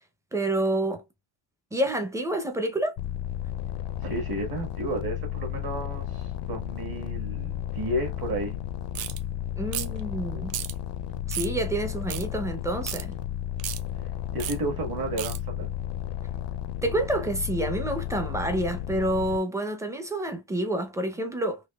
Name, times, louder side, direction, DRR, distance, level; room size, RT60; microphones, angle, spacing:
voice 1, 0.3-1.0 1.7-3.0 9.6-10.6 11.3-13.1 16.8-21.6, right 1 dB, 5° right, 0.5 m, -28 dB
sound 1, 3.0-19.4, left 10 dB, 60° left, 0.5 m, -33 dB
voice 2, 4.0-8.6 14.3-15.7, right 1 dB, 50° right, 1.6 m, -32 dB
sound 2, 8.9-9.2 9.7-10.0 10.5-10.7 11.3-11.5 12.1-12.2 12.9-13.0 13.6-13.8 14.4-14.6 15.2-15.4, right 12 dB, 70° right, 0.6 m, -33 dB
4.0 x 2.7 x 2.2 m
cardioid pair, 155°, 48 cm